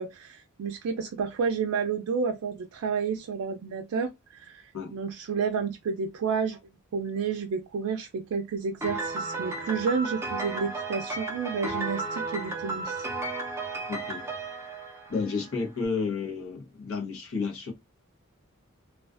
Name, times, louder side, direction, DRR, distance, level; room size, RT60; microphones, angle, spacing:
voice 1, 0.0-6.6 6.9-13.1, right 5 dB, 90° right, 0.4 m, -30 dB
Piano, 8.8-15.6, right 3 dB, 10° right, 0.5 m, -34 dB
voice 2, 13.9-14.2 15.1-17.7, left 4 dB, 75° left, 0.9 m, -31 dB
2.3 x 2.3 x 2.4 m
head